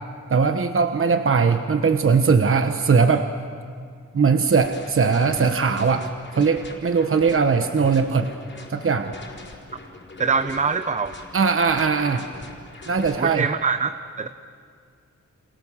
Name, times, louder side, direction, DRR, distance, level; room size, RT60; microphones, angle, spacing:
voice 1, 0.3-3.3 4.1-6.1 6.3-8.3 8.7-9.1 11.3-12.3 12.9-13.5, right 5 dB, 45° right, 8 dB, 1.2 m, -20 dB
sound 1, 4.5-13.2, left 2 dB, 40° left, 4.5 m, -42 dB
voice 2, 10.2-11.1 13.2-13.9 14.2-14.3, right 5 dB, 25° right, 10 dB, 0.8 m, -23 dB
29.5 x 27.5 x 7.3 m, 2.2 s
wide cardioid pair, 110°, 30 cm